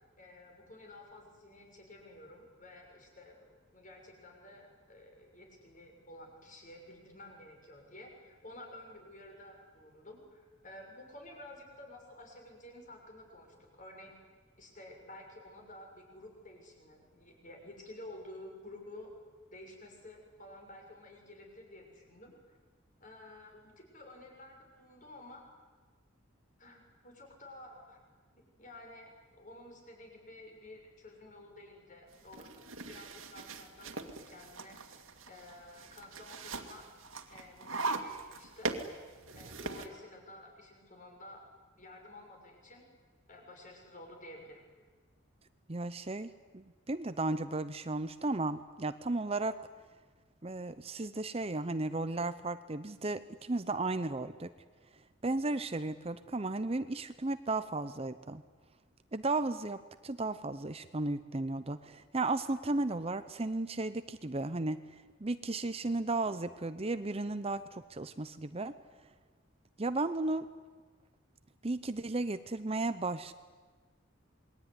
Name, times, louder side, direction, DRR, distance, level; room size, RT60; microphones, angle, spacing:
voice 1, 0.2-3.4 3.7-14.2 14.6-19.1 19.5-22.6 23.0-25.4 26.6-28.0 28.6-32.5 32.9-35.0 35.3-36.9 37.3-38.7 39.3-41.4 41.8-42.8 43.3-44.6, left 1 dB, 40° left, 2 dB, 6.6 m, -52 dB
sound 1, 32.1-39.9, right 3 dB, 80° right, 2.3 m, -41 dB
voice 2, 45.7-49.6 50.4-54.5 55.2-58.4 59.1-68.7 69.8-70.5 71.6-73.3, right 2 dB, 30° right, 12 dB, 0.8 m, -34 dB
28.0 x 21.5 x 9.9 m, 1.4 s
head